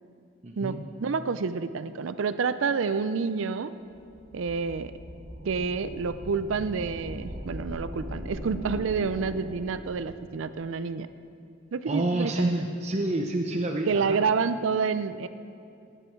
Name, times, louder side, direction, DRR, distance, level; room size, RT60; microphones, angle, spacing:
voice 1, 0.4-0.8 11.9-14.2, right 1 dB, 35° right, 2 dB, 0.7 m, -28 dB
voice 2, 1.0-3.7 4.3-4.9 5.4-11.1 11.7-12.5 13.9-15.3, right 5 dB, 70° right, 13 dB, 0.5 m, -28 dB
sound 1, 3.9-10.4, equal, 50° right, 2.1 m, -40 dB
18.5 x 9.1 x 4.6 m, 2.5 s
head